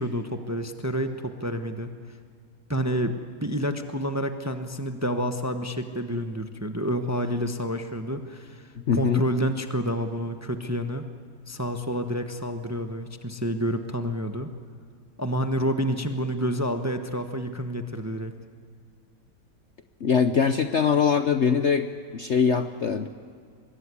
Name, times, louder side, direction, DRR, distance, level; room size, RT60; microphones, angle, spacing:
voice 1, 0.0-1.9 2.7-11.1 11.5-14.5 15.2-18.3, equal, 10° right, 7 dB, 0.9 m, -29 dB
voice 2, 8.9-9.2 20.0-23.1, left 6 dB, 50° left, 8 dB, 0.9 m, -22 dB
24.5 x 21.5 x 9.8 m, 2.1 s
omnidirectional pair, 1.9 m